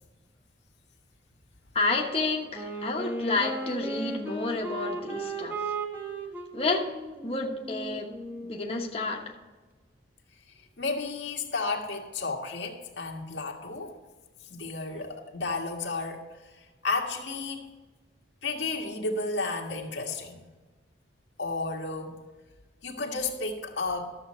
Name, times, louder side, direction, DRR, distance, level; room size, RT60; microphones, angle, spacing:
voice 1, 1.7-5.6 6.5-6.9 7.2-8.1 8.5-9.2, left 3 dB, 35° left, -1 dB, 1.1 m, -30 dB
Wind instrument woodwind instrument, 2.5-9.1, right 2 dB, 10° right, 1.2 m, -36 dB
voice 2, 10.8-14.0 14.5-16.3 16.6-17.7 18.4-20.4 21.4-22.2 22.8-24.2, left 3 dB, 85° left, 0 dB, 1.7 m, -32 dB
12.5 x 7.4 x 4.4 m, 1.3 s
head